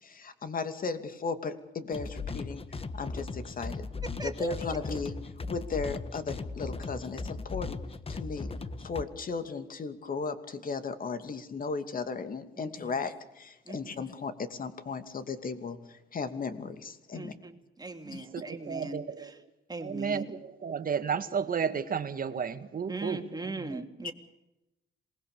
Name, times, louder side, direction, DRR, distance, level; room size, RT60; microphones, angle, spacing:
voice 1, 0.0-3.8 4.2-5.1 5.5-7.8 8.1-8.5 8.8-17.3 18.1-18.3 24.0-24.1, left 4 dB, 45° left, 9 dB, 2.7 m, -36 dB
sound 1, 1.9-9.0, left 3 dB, 30° left, 1.5 m, -38 dB
voice 2, 4.0-4.5 12.6-12.9 13.7-13.9 17.1-19.4 19.7-20.3 22.9-24.1, right 2 dB, 20° right, 6 dB, 2.8 m, -40 dB
voice 3, 18.0-19.3 19.8-23.8, right 6 dB, 45° right, 9 dB, 2.0 m, -33 dB
27.0 x 20.5 x 6.9 m, 0.92 s
cardioid pair, 90°, 20 cm